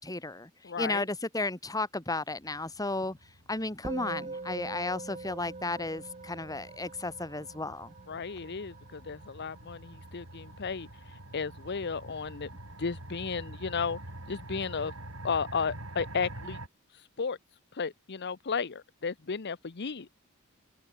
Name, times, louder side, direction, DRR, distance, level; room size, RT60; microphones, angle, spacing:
voice 1, 0.0-3.2 3.5-7.9, left 2 dB, 15° left, 2.4 m, -34 dB
voice 2, 0.6-1.1 8.1-10.9 11.3-12.5 12.8-14.0 14.3-14.9 15.2-16.6 17.2-17.4 17.7-20.2, left 5 dB, 55° left, 0.8 m, -34 dB
sound 1, 2.3-16.7, right 1 dB, 80° right, 6.3 m, -47 dB
Musical instrument, 3.8-13.4, right 3 dB, 35° right, 1.3 m, -45 dB
open air
head